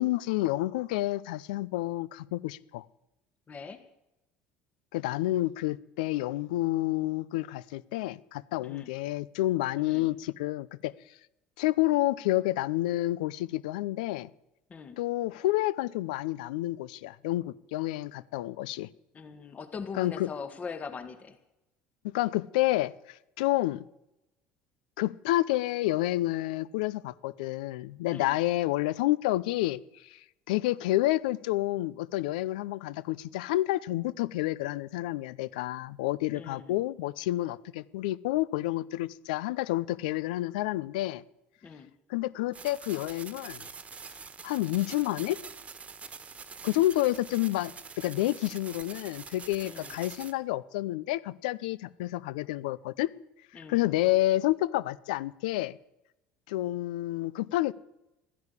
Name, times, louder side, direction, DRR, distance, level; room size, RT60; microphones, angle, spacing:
voice 1, 0.0-2.8 4.9-10.9 11.6-14.3 15.0-18.9 19.9-20.3 22.0-22.9 23.4-23.8 25.0-30.2 30.5-41.2 42.1-43.6 44.4-45.4 46.6-53.1 53.7-55.8 56.5-57.7, left 16 dB, 85° left, 20 dB, 0.6 m, -29 dB
voice 2, 3.5-3.8 8.6-8.9 9.8-10.1 14.7-15.0 19.1-21.4 28.1-28.4 36.3-36.8 41.6-41.9 49.6-49.9 53.5-53.8, left 5 dB, 35° left, 8 dB, 1.7 m, -41 dB
sound 1, 42.5-50.3, right 5 dB, 30° right, 1.3 m, -45 dB
13.5 x 10.5 x 8.3 m, 0.90 s
supercardioid pair, 85°, 4 cm